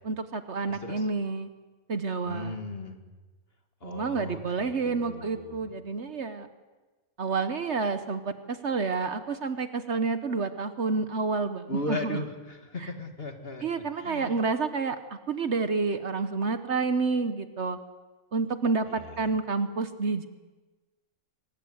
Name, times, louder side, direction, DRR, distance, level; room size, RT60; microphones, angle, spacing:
voice 1, 0.0-1.5 1.9-2.6 3.8-6.5 7.2-12.2 12.8-12.9 13.6-15.0 15.3-17.8 18.3-20.3, right 4 dB, 55° right, 10 dB, 1.3 m, -29 dB
voice 2, 0.6-1.1 2.2-3.0 3.8-5.7 11.7-14.4 18.9-19.3, left 2 dB, 40° left, 5 dB, 2.5 m, -37 dB
24.5 x 20.5 x 8.0 m, 1.3 s
omnidirectional pair, 1.5 m